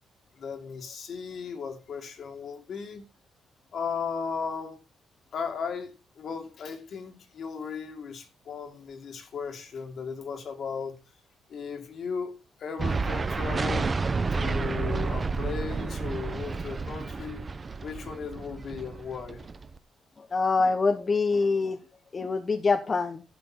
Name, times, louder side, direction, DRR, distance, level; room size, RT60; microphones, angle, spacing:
voice 1, 0.4-3.1 3.7-4.8 5.3-11.0 11.5-12.3 12.6-13.9 14.3-17.4 17.8-19.5, left 6 dB, 60° left, 2.3 m, -36 dB
sound 1, 12.8-19.8, right 4 dB, 30° right, 0.8 m, -30 dB
voice 2, 20.2-21.8 22.1-23.2, left 4 dB, 35° left, 0.9 m, -25 dB
12.0 x 7.6 x 4.4 m
cardioid pair, 90°, 0 cm